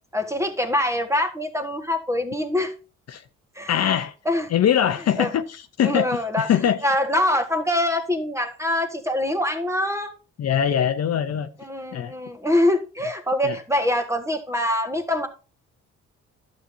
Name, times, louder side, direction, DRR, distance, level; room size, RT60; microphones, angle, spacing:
voice 1, 0.1-2.7 3.6-3.7 4.3-4.5 5.2-5.3 5.8-6.5 6.8-10.1 11.6-15.3, left 1 dB, 10° right, 1.8 m, -24 dB
voice 2, 3.7-4.1 4.5-6.8 10.4-11.5 11.9-12.1 13.4-13.6, left 9 dB, 55° left, 0.8 m, -22 dB
11.5 x 7.6 x 2.8 m
cardioid pair, 90°, 30 cm